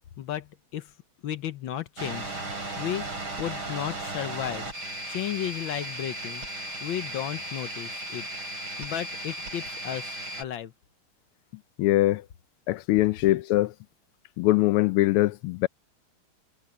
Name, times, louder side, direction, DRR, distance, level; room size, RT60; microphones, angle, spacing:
voice 1, 0.2-0.5 0.7-0.9 1.2-2.3 2.8-3.0 3.4-4.7 5.1-6.4 6.8-8.3 8.8-10.7, left 11 dB, 70° left, 1.5 m, -33 dB
sound 1, 2.0-10.4, right 1 dB, 70° right, 7.6 m, -36 dB
voice 2, 11.8-12.2 12.7-13.7 14.4-15.7, left 16 dB, 85° left, 1.5 m, -22 dB
omnidirectional pair, 2.4 m